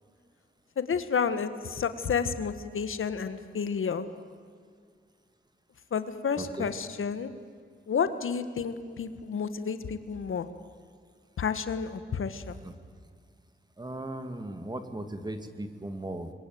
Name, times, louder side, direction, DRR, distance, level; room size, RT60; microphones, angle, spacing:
voice 1, 0.8-4.1 5.9-7.3 7.9-10.5 11.4-12.6, left 6 dB, 85° left, 11 dB, 1.5 m, -30 dB
voice 2, 6.4-6.7 12.6-12.7 13.8-16.3, right 1 dB, 20° right, 8 dB, 2.1 m, -37 dB
27.5 x 22.0 x 9.4 m, 2.1 s
wide cardioid pair, 140°, 21 cm